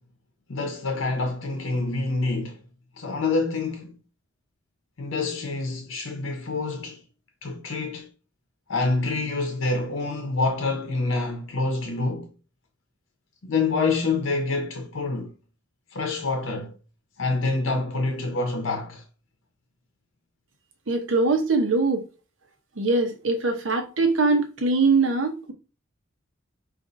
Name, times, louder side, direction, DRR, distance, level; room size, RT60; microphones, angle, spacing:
voice 1, 0.5-2.6 3.0-4.0 5.0-7.0 7.4-8.1 8.7-12.3 13.4-15.3 15.9-16.7 17.2-19.0, left 3 dB, 90° left, 0.7 m, -27 dB
voice 2, 20.9-22.1 22.8-25.5, right 3 dB, 85° right, 0.8 m, -22 dB
5.0 x 2.5 x 2.6 m
head